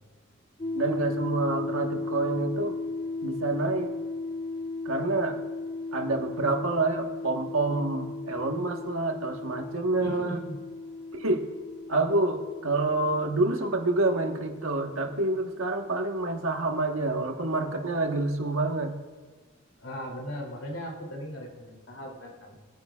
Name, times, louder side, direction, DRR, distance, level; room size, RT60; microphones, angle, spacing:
sound 1, 0.6-16.1, left 3 dB, 20° left, 0.4 m, -36 dB
voice 1, 0.7-2.7 3.2-3.9 4.8-5.4 5.9-10.4 11.1-11.5 11.9-18.9, right 2 dB, 85° right, 3 dB, 1.4 m, -27 dB
voice 2, 10.0-10.6 19.8-22.5, equal, 75° left, 0 dB, 3.1 m, -38 dB
22.5 x 9.6 x 2.4 m, 1.5 s
head